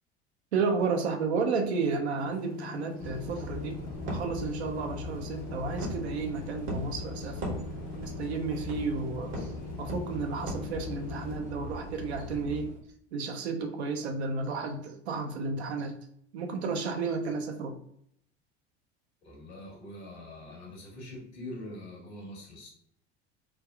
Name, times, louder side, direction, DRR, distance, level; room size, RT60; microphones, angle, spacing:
voice 1, 0.5-3.8 4.1-7.6 8.0-9.5 9.8-12.7 13.1-15.9 16.3-17.7, right 4 dB, 85° right, 5 dB, 0.5 m, -32 dB
sound 1, 2.2-11.4, left 8 dB, 30° left, 0.4 m, -43 dB
sound 2, 3.0-12.8, equal, 60° right, 1.1 m, -39 dB
voice 2, 19.2-22.7, left 1 dB, 90° left, -1 dB, 1.2 m, -44 dB
3.3 x 2.2 x 2.3 m, 0.69 s
hypercardioid pair, 70°, 32 cm